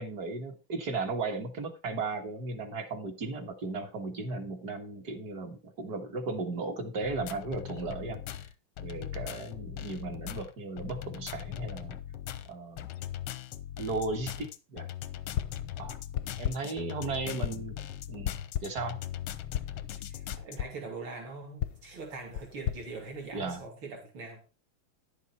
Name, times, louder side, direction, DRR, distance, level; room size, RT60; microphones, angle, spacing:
voice 1, 0.0-8.2 8.8-12.0 12.5-12.9 13.8-14.9 15.8-16.0 16.4-17.7 18.1-19.0 23.3-23.6, right 3 dB, 50° right, 5 dB, 1.9 m, -36 dB
sound 1, 7.0-20.6, left 11 dB, 90° left, 1.6 m, -40 dB
sound 2, 15.4-15.7 16.2-16.8 17.4-17.8 18.2-18.9 19.5-19.8 20.3-20.8 21.6-23.7, left 11 dB, 70° left, 1.0 m, -36 dB
voice 2, 17.2-17.6 20.1-24.4, right 3 dB, 70° right, 1 dB, 3.4 m, -42 dB
11.0 x 7.3 x 4.2 m, 0.30 s
omnidirectional pair, 2.3 m